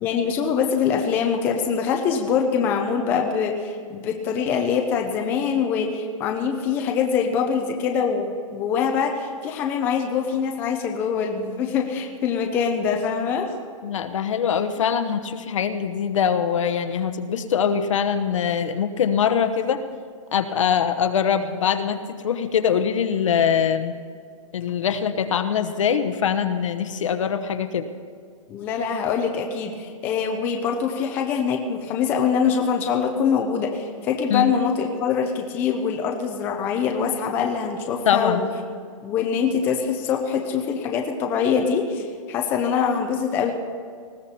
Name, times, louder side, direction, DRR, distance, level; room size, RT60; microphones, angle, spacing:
voice 1, 0.0-13.5 28.5-38.5 39.0-43.5, left 6 dB, 10° left, 3 dB, 0.5 m, -24 dB
voice 2, 13.8-19.8 20.3-23.9 24.5-27.9 34.3-34.5 38.0-38.4, left 7 dB, 65° left, 9 dB, 1.1 m, -23 dB
19.5 x 15.0 x 4.3 m, 2.1 s
hypercardioid pair, 180°, 17 cm